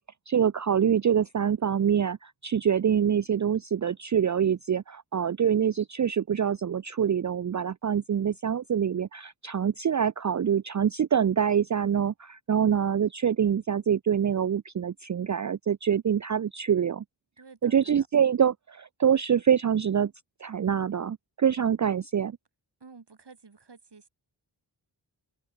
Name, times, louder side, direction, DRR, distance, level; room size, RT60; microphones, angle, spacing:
voice 1, 0.3-17.0 17.6-20.1 20.4-22.4, right 8 dB, 40° right, 0.5 m, -25 dB
voice 2, 17.4-18.1 22.8-24.1, right 4 dB, 60° right, 3.2 m, -51 dB
open air
cardioid pair, 45°, 45 cm